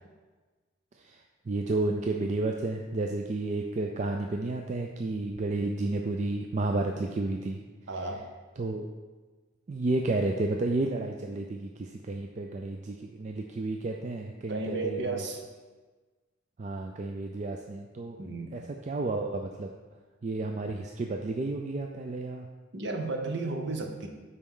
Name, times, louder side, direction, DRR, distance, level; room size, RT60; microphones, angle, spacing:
voice 1, 1.0-7.6 8.6-8.9 9.7-15.2 16.6-18.2 18.5-19.7 20.2-22.5, right 2 dB, 35° right, 3 dB, 0.3 m, -31 dB
voice 2, 7.9-8.3 14.5-15.4 18.2-18.5 22.7-24.1, right 3 dB, 55° right, 3 dB, 0.8 m, -33 dB
9.6 x 4.3 x 3.8 m, 1.3 s
head